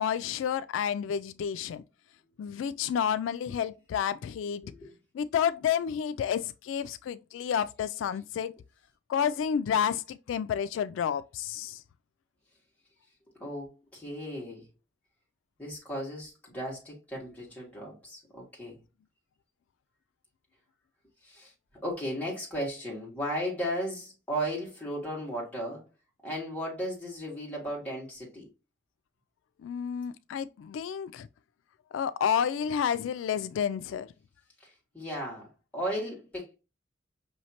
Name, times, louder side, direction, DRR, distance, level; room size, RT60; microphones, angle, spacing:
voice 1, 0.0-1.8 2.4-4.7 5.1-8.5 9.1-11.8 29.6-31.3 31.9-34.1, left 8 dB, 85° left, 0.3 m, -30 dB
voice 2, 4.6-4.9 13.4-14.7 15.6-18.8 21.2-21.5 21.8-25.8 26.2-28.5 34.6-36.5, equal, 10° left, 1.9 m, -35 dB
5.5 x 3.1 x 2.8 m
head